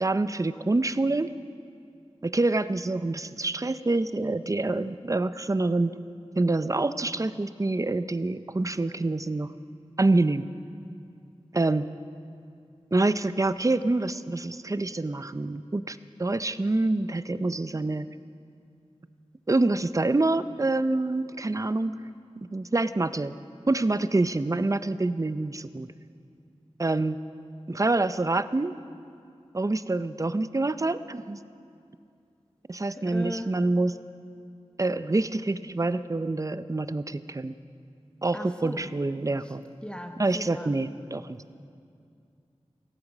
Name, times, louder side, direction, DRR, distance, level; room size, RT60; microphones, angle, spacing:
voice 1, 0.0-1.3 2.2-6.0 6.4-9.5 10.0-10.5 11.5-11.9 12.9-18.1 19.5-22.0 22.4-23.3 23.7-25.9 26.8-27.2 27.7-28.8 29.5-31.4 32.7-34.0 34.8-37.5 38.2-39.6 40.2-41.4, right 2 dB, 30° right, 13 dB, 0.5 m, -26 dB
voice 2, 32.9-33.5 38.3-38.9 39.4-39.6 39.8-40.8, equal, 10° left, 5 dB, 1.3 m, -38 dB
16.5 x 14.0 x 6.0 m, 2.4 s
wide cardioid pair, 60°, 11 cm